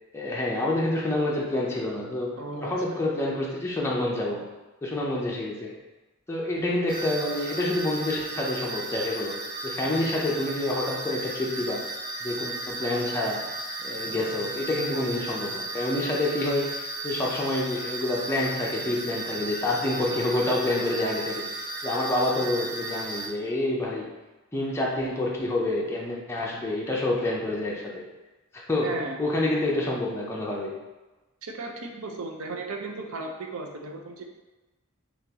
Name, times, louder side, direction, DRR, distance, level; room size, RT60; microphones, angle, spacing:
voice 1, 0.1-4.5 4.8-5.8 6.3-9.4 9.6-11.9 12.2-13.5 13.8-24.1 24.5-28.1 28.5-30.7, left 1 dB, 10° left, -4 dB, 0.5 m, -28 dB
voice 2, 2.4-3.0 28.8-29.2 31.4-34.2, right 3 dB, 85° right, 3 dB, 0.5 m, -36 dB
sound 1, 6.9-23.3, right 2 dB, 65° right, 0.9 m, -35 dB
3.7 x 2.9 x 2.8 m, 1.1 s
head